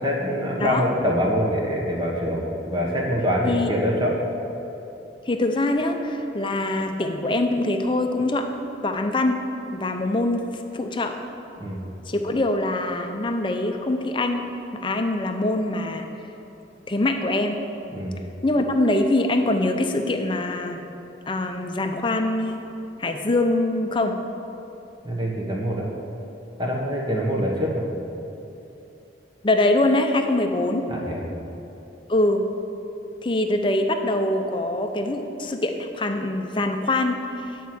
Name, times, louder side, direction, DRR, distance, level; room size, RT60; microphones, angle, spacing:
voice 1, 0.0-4.2 11.6-11.8 17.9-18.1 25.0-25.9 26.6-27.9 30.9-31.2, equal, 25° right, -2 dB, 1.3 m, -24 dB
voice 2, 5.3-8.5 8.8-9.4 9.7-10.4 10.7-11.1 12.1-14.5 14.8-16.1 16.9-17.6 18.4-20.8 21.3-22.7 23.0-24.2 29.4-30.9 32.1-32.4 33.2-37.6, left 2 dB, 25° left, 5 dB, 0.6 m, -23 dB
9.4 x 4.6 x 7.7 m, 2.9 s
head